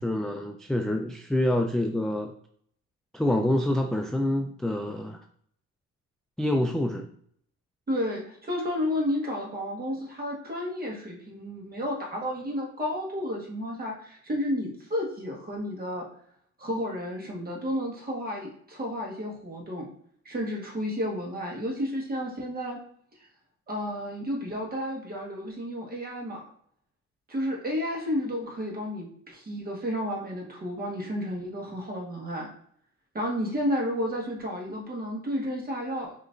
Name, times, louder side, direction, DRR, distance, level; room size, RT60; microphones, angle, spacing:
voice 1, 0.0-2.3 3.1-5.2 6.4-7.1, left 1 dB, ahead, 4 dB, 0.3 m, -26 dB
voice 2, 7.9-16.1 16.6-19.9 20.2-22.8 23.7-26.4 27.3-32.5 33.1-36.1, equal, 30° right, -1 dB, 1.5 m, -31 dB
5.8 x 3.1 x 2.6 m, 0.63 s
cardioid pair, 90°, 30 cm